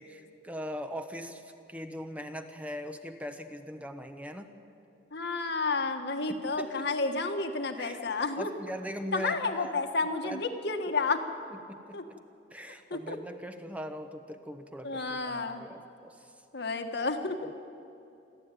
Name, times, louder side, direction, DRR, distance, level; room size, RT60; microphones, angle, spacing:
voice 1, 0.0-4.5 6.3-6.9 7.7-8.0 8.4-9.8 10.2-10.4 11.7-11.8 12.5-16.2 17.4-17.5, equal, 10° right, 7 dB, 1.1 m, -40 dB
voice 2, 5.1-8.5 9.1-11.2 11.9-12.0 12.9-13.2 14.8-15.6 16.5-17.4, left 3 dB, 60° left, 6 dB, 1.6 m, -31 dB
28.0 x 12.0 x 9.2 m, 2.7 s
head